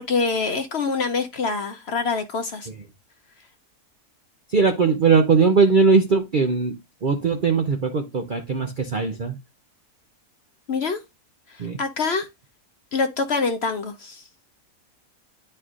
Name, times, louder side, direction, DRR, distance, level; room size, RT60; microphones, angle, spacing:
voice 1, 0.0-2.7 10.7-11.0 11.5-12.3 12.9-14.2, left 4 dB, 55° left, 0.8 m, -25 dB
voice 2, 4.5-9.4 11.6-11.8, right 5 dB, 55° right, 0.5 m, -20 dB
11.0 x 4.3 x 2.4 m
omnidirectional pair, 1.6 m